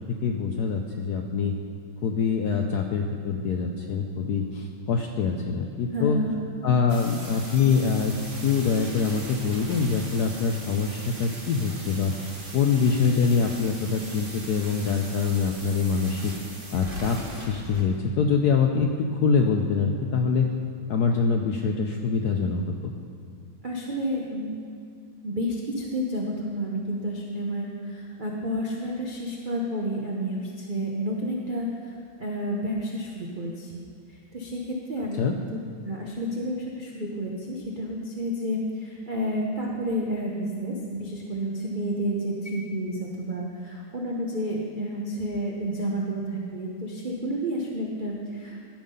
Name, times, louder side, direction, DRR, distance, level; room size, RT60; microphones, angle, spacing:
voice 1, 0.2-1.5 2.0-6.2 6.6-8.1 8.4-16.3 16.7-20.5 20.9-22.9 35.2-35.4, left 5 dB, 75° left, 3 dB, 0.9 m, -24 dB
voice 2, 5.9-6.4 23.6-24.6 25.2-33.7 34.3-35.2 35.8-48.6, equal, 60° right, -2 dB, 0.5 m, -30 dB
sound 1, 6.9-17.8, right 1 dB, 30° right, 1.5 m, -40 dB
13.5 x 5.6 x 5.4 m, 2.4 s
omnidirectional pair, 2.3 m